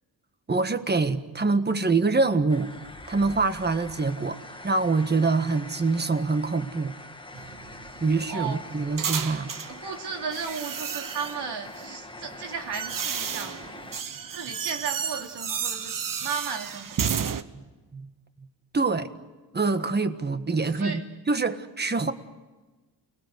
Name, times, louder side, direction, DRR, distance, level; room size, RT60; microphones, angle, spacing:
voice 1, 0.5-2.8 3.1-6.9 8.0-9.5 17.5-17.6 17.9-18.1 18.7-19.1 19.5-21.0 21.3-22.1, right 3 dB, 25° right, 10 dB, 1.6 m, -25 dB
sound 1, 2.5-14.0, left 2 dB, 10° left, 1.5 m, -44 dB
sound 2, 7.3-9.8 10.3-11.5 12.3-17.4, right 7 dB, 50° right, 1.2 m, -32 dB
voice 2, 8.3-8.6 9.6-13.6 14.2-15.9 16.2-17.3 20.8-21.0, right 6 dB, 75° right, 3 dB, 3.0 m, -35 dB
29.0 x 20.0 x 8.0 m, 1.2 s
cardioid pair, 85°, 41 cm